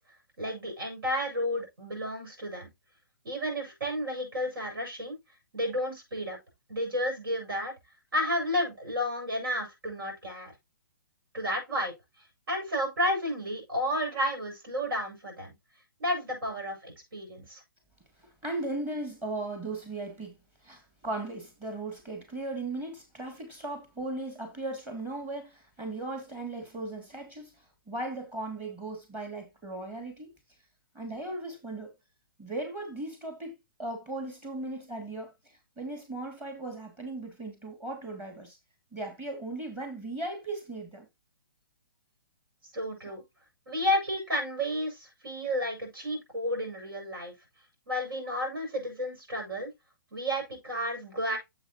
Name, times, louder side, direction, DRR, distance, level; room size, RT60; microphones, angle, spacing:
voice 1, 0.4-2.7 3.2-5.1 5.5-6.4 6.7-7.7 8.1-10.5 11.3-11.9 12.5-15.6 16.0-17.6 42.7-43.2 43.7-47.3 47.9-49.7 50.1-51.4, equal, 80° right, 7.0 m, -31 dB
voice 2, 18.4-20.4 20.6-27.5 27.9-30.3 30.9-31.9 32.4-35.3 35.8-38.6 38.9-41.1, right 2 dB, 15° right, 2.6 m, -37 dB
9.7 x 7.5 x 3.0 m
hypercardioid pair, 160°, 12 cm